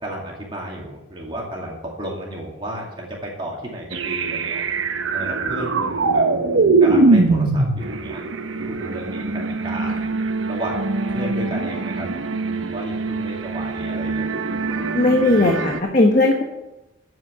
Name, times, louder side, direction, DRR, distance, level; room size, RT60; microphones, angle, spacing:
voice 1, 0.0-4.6 5.1-6.2 6.8-8.2 8.6-9.2 9.6-10.0 10.5-12.1 12.4-14.3, right 1 dB, 25° right, -2 dB, 2.2 m, -32 dB
sound 1, 3.9-15.8, right 3 dB, 85° right, 0.9 m, -22 dB
voice 2, 14.9-16.4, left 2 dB, 40° left, 1 dB, 1.3 m, -17 dB
11.5 x 7.8 x 7.5 m, 0.97 s
head